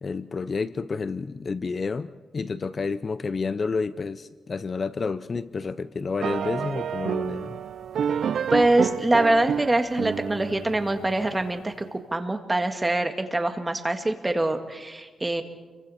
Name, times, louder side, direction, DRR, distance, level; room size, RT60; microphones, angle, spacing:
voice 1, 0.0-7.6, left 4 dB, 40° left, 14 dB, 0.6 m, -30 dB
sound 1, 6.2-11.5, right 8 dB, 75° right, 0.5 m, -29 dB
voice 2, 8.5-15.4, right 2 dB, 15° right, 6 dB, 1.8 m, -24 dB
29.0 x 23.5 x 4.3 m, 1.3 s
cardioid pair, 105°, 0 cm